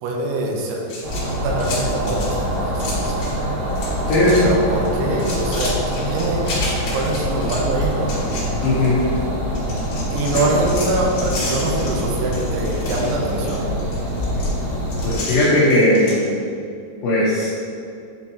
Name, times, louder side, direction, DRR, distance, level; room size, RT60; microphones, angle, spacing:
voice 1, 0.0-0.8 1.4-3.1 4.1-6.5 6.9-8.1 10.1-13.6, right 2 dB, 85° right, -1 dB, 3.1 m, -24 dB
sound 1, 0.8-3.4 3.7-4.4 4.7-9.2 9.5-16.2, left 2 dB, 60° left, 2.0 m, -32 dB
sound 2, 1.0-15.2, equal, 65° right, 2.9 m, -24 dB
voice 2, 4.1-4.5 8.6-9.0 15.0-16.4 17.0-17.5, left 1 dB, 80° left, -9 dB, 2.0 m, -17 dB
8.9 x 4.6 x 2.8 m, 2.5 s
omnidirectional pair, 5.4 m